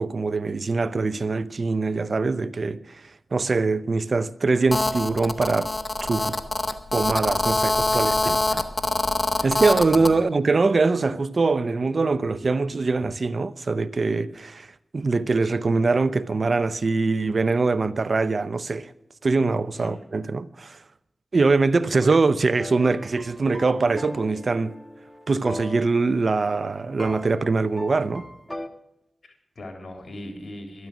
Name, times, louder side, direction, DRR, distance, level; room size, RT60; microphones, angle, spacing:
voice 1, 0.0-3.0 3.3-5.7 6.0-6.3 6.9-8.4 9.4-14.7 14.9-18.9 19.2-20.8 21.3-24.7 25.3-28.2, right 3 dB, 60° right, 0.7 m, -23 dB
Telephone, 4.7-10.1, left 2 dB, 35° left, 1.5 m, -24 dB
voice 2, 7.9-8.6 9.4-9.6 9.9-10.2 19.8-19.9 21.8-22.0 29.2-30.9, left 1 dB, 65° left, 3.7 m, -40 dB
sound 1, 22.6-28.7, left 1 dB, 15° left, 1.5 m, -38 dB
12.5 x 12.0 x 6.2 m
cardioid pair, 45°, 0 cm